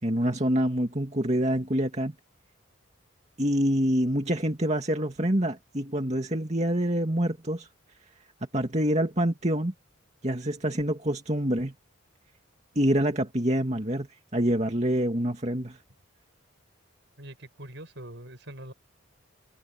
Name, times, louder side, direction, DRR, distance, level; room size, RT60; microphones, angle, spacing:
voice 1, 0.0-2.1 3.4-7.7 8.5-9.7 10.2-11.7 12.8-14.1 14.3-15.8, equal, 35° right, 2.3 m, -26 dB
voice 2, 17.2-18.7, right 1 dB, 60° right, 6.0 m, -43 dB
head